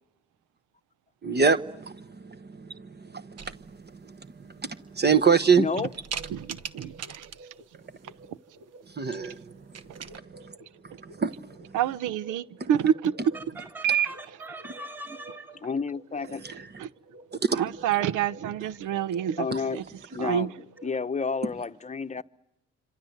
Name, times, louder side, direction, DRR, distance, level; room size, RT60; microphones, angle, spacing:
voice 1, 1.2-2.7 3.1-3.3 4.6-5.7 9.0-9.3 11.2-11.3 12.6-12.7 17.5-17.7, right 5 dB, 35° right, 1.2 m, -24 dB
sound 1, 3.4-4.0 4.6-4.7 5.1-5.6 5.9-7.6 9.1-9.3 9.6-10.2, right 7 dB, 55° right, 1.2 m, -40 dB
voice 2, 5.6-5.9 15.6-16.4 19.4-19.8 20.1-20.5 20.8-22.2, left 5 dB, 25° left, 0.9 m, -30 dB
sound 2, 5.9-21.0, right 2 dB, 75° right, 3.9 m, -52 dB
voice 3, 6.3-7.3 11.7-13.1 13.8-14.1 16.8-16.9 17.5-19.4 19.7-19.8 20.2-20.5, right 10 dB, 90° right, 1.0 m, -27 dB
voice 4, 13.6-15.6, right 1 dB, 5° right, 1.6 m, -41 dB
27.0 x 26.0 x 8.0 m
cardioid pair, 90°, 30 cm